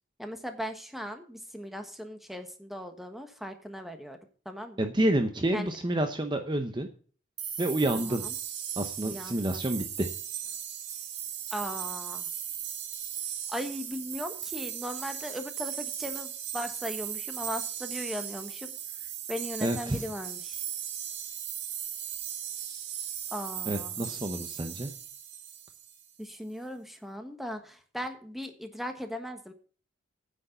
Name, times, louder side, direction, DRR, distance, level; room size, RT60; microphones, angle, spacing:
voice 1, 0.2-4.2 4.4-4.8 5.5-5.7 7.9-8.3 9.0-9.6 11.5-12.3 13.5-18.7 19.3-20.6 23.3-24.1 26.2-29.5, equal, ahead, 6 dB, 1.3 m, -38 dB
voice 2, 4.8-6.9 7.6-8.3 8.8-10.1 19.6-20.0 23.7-24.9, right 1 dB, 25° right, 6 dB, 0.8 m, -29 dB
sound 1, 7.4-26.1, right 9 dB, 60° right, 1.7 m, -37 dB
9.8 x 6.4 x 7.9 m, 0.42 s
head